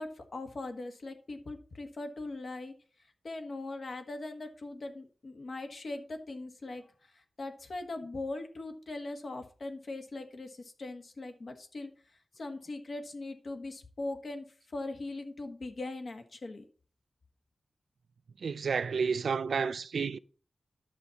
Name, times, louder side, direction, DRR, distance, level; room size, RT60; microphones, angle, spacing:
voice 1, 0.0-2.7 3.2-11.9 12.4-14.4 14.7-16.6, left 2 dB, 50° left, 1.5 m, -40 dB
voice 2, 18.4-20.2, right 5 dB, 80° right, 0.4 m, -30 dB
11.0 x 7.1 x 4.1 m
wide cardioid pair, 145°, 0 cm